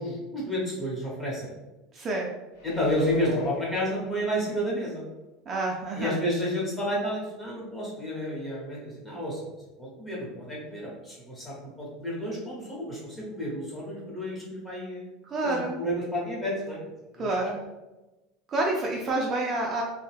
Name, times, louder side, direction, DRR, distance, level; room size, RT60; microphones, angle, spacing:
voice 1, 0.0-1.5 2.6-5.0 5.9-9.4 9.8-15.1 15.4-16.8 17.2-17.5, equal, 15° left, -5 dB, 1.0 m, -31 dB
voice 2, 1.9-2.3 5.5-6.2 15.2-15.8 17.2-17.6 18.5-19.8, right 2 dB, 30° right, -1 dB, 0.4 m, -28 dB
sound 1, 2.5-4.6 5.1-5.2, equal, 80° left, 1.0 m, -42 dB
2.6 x 2.2 x 3.2 m, 1.1 s
supercardioid pair, 150°, 0 cm